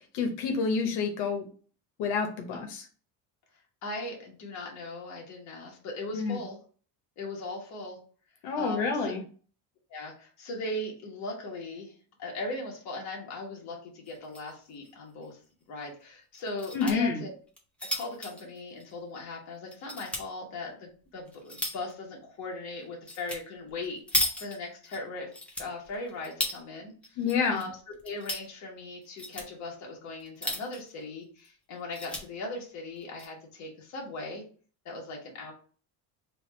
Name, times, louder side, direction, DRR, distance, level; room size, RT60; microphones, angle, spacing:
voice 1, 0.1-1.4 2.0-2.8 6.1-6.4 8.4-9.2 16.7-17.2 27.2-27.6, left 5 dB, 85° left, 4 dB, 0.8 m, -28 dB
voice 2, 3.8-6.6 7.2-8.0 8.6-9.1 9.9-11.9 12.2-15.4 15.7-17.3 17.8-25.3 25.6-27.2 27.5-34.4 34.8-35.5, left 2 dB, 45° left, -1 dB, 1.2 m, -39 dB
sound 1, 14.1-14.5 14.8-14.9 15.2-15.3 16.3-17.0 17.5-19.3 19.7-20.3 20.9-21.9 23.1-23.4 23.7-25.0 25.3-26.6 27.0-27.6 27.9-28.5 29.0-29.5 30.2-30.9 31.4-31.5 31.7-32.2 33.0-33.3, left 1 dB, 5° left, 0.3 m, -34 dB
3.4 x 2.3 x 4.3 m, 0.41 s
cardioid pair, 180°, 38 cm